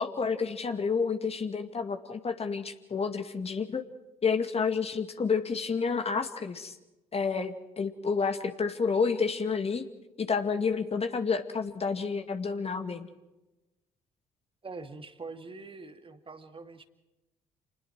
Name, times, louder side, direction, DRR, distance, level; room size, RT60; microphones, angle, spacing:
voice 1, 0.0-3.9 4.2-6.8 7.1-9.9 10.2-13.1, left 5 dB, 35° left, 7 dB, 2.2 m, -30 dB
voice 2, 14.6-16.8, right 3 dB, 30° right, 7 dB, 2.4 m, -44 dB
30.0 x 20.5 x 4.8 m, 1.0 s
figure-of-eight pair, 45°, 19 cm